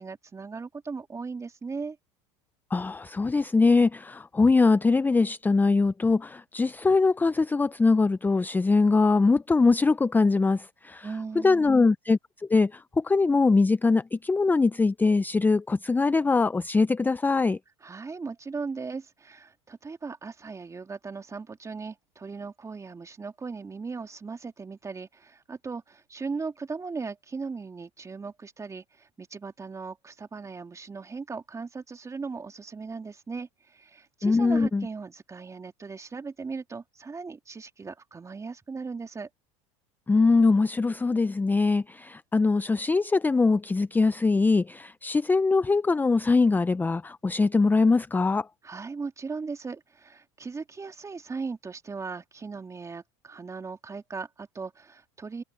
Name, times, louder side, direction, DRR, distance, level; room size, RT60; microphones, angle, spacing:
voice 1, 0.0-2.0 11.0-11.9 17.8-39.3 48.6-55.4, right 4 dB, 20° right, 2.8 m, -38 dB
voice 2, 2.7-11.1 11.4-17.6 34.2-34.8 40.1-48.5, left 3 dB, 10° left, 0.6 m, -22 dB
hypercardioid pair, 95°, 15 cm